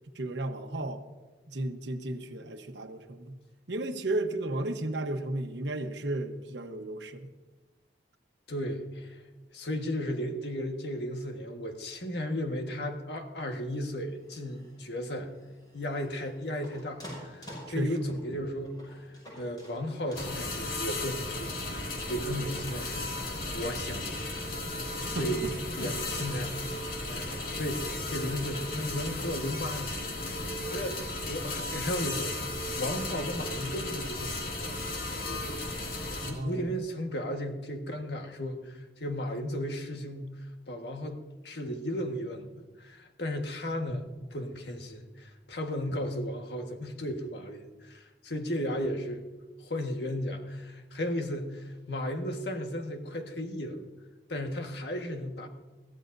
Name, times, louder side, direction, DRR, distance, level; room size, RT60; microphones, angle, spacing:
voice 1, 0.1-1.0 1.5-3.4 3.7-7.3 17.7-18.2 25.0-25.3 25.8-25.9 36.2-36.6 48.4-48.5, right 1 dB, 85° right, 6 dB, 1.1 m, -34 dB
voice 2, 8.5-9.2 9.5-15.3 15.7-23.1 23.5-24.3 25.2-25.4 25.8-26.6 27.1-32.3 32.8-34.8 35.1-49.2 49.6-53.8 54.3-55.5, equal, 70° left, 4 dB, 1.5 m, -35 dB
sound 1, 14.1-29.8, equal, 25° left, 5.8 m, -51 dB
sound 2, 20.2-36.3, left 2 dB, 50° left, 2.5 m, -35 dB
21.5 x 15.0 x 2.7 m, 1.2 s
head